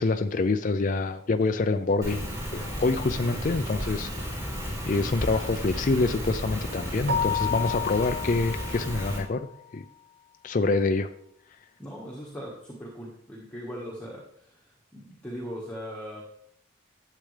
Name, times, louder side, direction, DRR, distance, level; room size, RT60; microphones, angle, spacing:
voice 1, 0.0-4.4 4.9-9.5 9.7-9.8 10.4-11.1, left 3 dB, 40° left, 8 dB, 0.4 m, -26 dB
Rain, 2.0-9.2, equal, 15° right, 3.5 m, -33 dB
Keyboard (musical), 7.1-9.5, left 7 dB, 55° right, 0.8 m, -31 dB
voice 2, 11.8-16.2, equal, 5° left, -5 dB, 1.5 m, -40 dB
12.0 x 7.6 x 3.3 m, 0.71 s
head